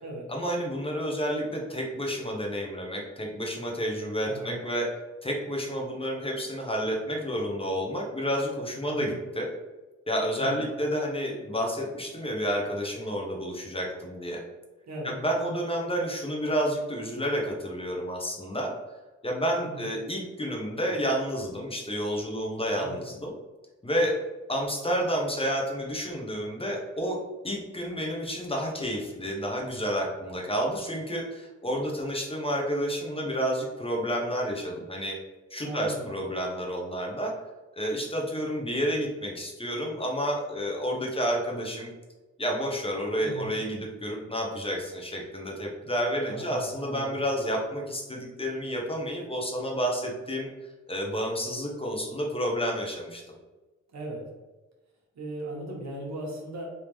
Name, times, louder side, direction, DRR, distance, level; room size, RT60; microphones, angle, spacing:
voice 1, 0.3-4.9 5.2-9.5 10.1-14.4 15.0-18.7 19.2-23.3 23.8-24.2 24.5-27.2 27.4-35.2 35.5-37.3 37.7-41.9 42.4-50.5 50.9-53.2, equal, 20° left, -1 dB, 0.8 m, -30 dB
voice 2, 4.3-4.6 8.9-9.2 10.4-10.7 14.8-15.2 19.6-19.9 22.8-23.0 35.6-36.1 43.2-43.6 46.3-47.2 53.9-54.2 55.1-56.7, right 2 dB, 65° right, -2 dB, 1.1 m, -38 dB
3.5 x 2.7 x 3.1 m, 1.2 s
cardioid pair, 85°, 30 cm